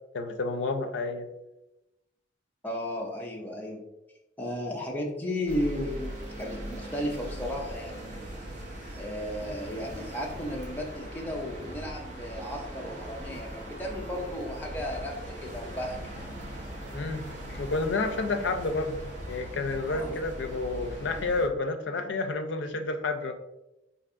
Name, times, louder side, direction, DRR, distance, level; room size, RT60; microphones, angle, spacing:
voice 1, 0.1-1.3 16.9-17.3 17.5-19.0 19.3-23.3, left 3 dB, 75° left, 7 dB, 0.4 m, -30 dB
voice 2, 2.6-3.8 4.4-8.3 9.0-16.2 17.5-17.6 19.9-20.2, left 1 dB, 10° left, -2 dB, 0.4 m, -34 dB
sound 1, 5.5-21.5, right 1 dB, 40° right, 0.8 m, -40 dB
4.5 x 2.6 x 2.5 m, 0.97 s
head